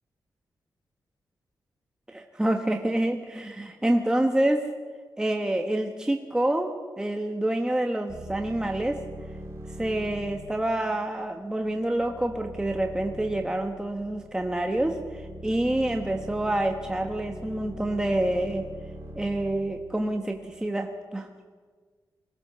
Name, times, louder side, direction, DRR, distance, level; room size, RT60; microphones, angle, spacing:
voice 1, 2.1-4.6 5.2-9.0 9.8-18.6 19.1-21.3, right 1 dB, 10° right, 3 dB, 1.3 m, -27 dB
sound 1, 8.1-20.6, right 1 dB, 35° right, 4.8 m, -42 dB
22.0 x 18.0 x 6.9 m, 1.5 s
wide cardioid pair, 120°, 8 cm